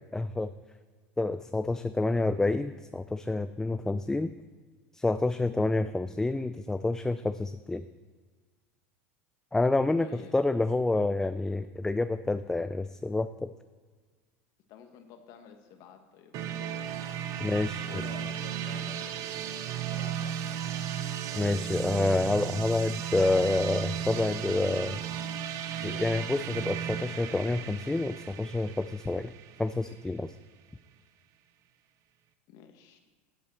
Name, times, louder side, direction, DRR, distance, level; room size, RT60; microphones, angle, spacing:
voice 1, 0.1-0.5 1.2-4.3 4.9-7.8 9.5-10.1 10.3-13.5 17.4-17.9 21.4-25.0 25.8-29.3 29.6-30.3, left 2 dB, 10° left, 11 dB, 0.3 m, -28 dB
voice 2, 10.0-10.3 14.7-16.9 17.8-20.8 32.5-33.0, left 7 dB, 60° left, 6 dB, 1.4 m, -50 dB
sound 1, 16.3-30.1, right 9 dB, 50° right, 0.7 m, -35 dB
11.0 x 8.0 x 4.4 m, 1.5 s
supercardioid pair, 105°, 7 cm